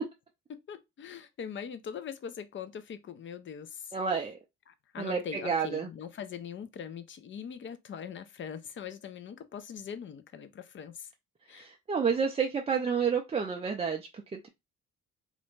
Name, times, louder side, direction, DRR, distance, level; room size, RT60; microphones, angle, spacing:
voice 1, 0.5-3.9 4.7-11.1 11.5-11.7, left 7 dB, 40° left, 0.5 m, -42 dB
voice 2, 3.9-4.4 5.0-5.9 11.5-14.5, right 6 dB, 20° right, 0.3 m, -30 dB
2.5 x 2.1 x 3.0 m
cardioid pair, 90°, 30 cm